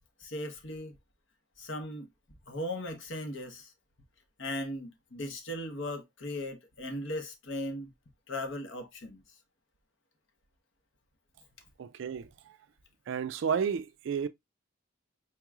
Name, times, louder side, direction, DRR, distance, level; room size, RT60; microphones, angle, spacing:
voice 1, 0.2-0.9 1.6-2.1 2.5-3.7 4.4-7.9 8.3-9.2, left 1 dB, 60° left, 0.9 m, -37 dB
voice 2, 11.8-12.6 13.1-14.3, right 7 dB, 60° right, 0.3 m, -32 dB
4.5 x 3.0 x 2.3 m
head